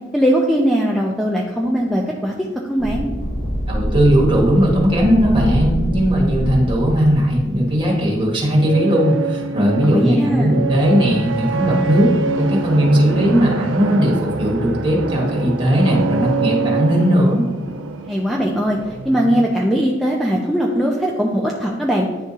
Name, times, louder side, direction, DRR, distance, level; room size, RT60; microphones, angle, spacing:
voice 1, 0.1-3.1 9.8-10.6 18.1-18.8 19.0-22.1, equal, ahead, -2 dB, 0.5 m, -20 dB
sound 1, 2.8-8.2, equal, 65° left, 0.8 m, -24 dB
voice 2, 3.7-17.4, equal, 25° right, -3 dB, 1.5 m, -17 dB
sound 2, 7.8-19.5, right 4 dB, 75° right, 0.4 m, -25 dB
10.0 x 3.5 x 2.8 m, 1.2 s
head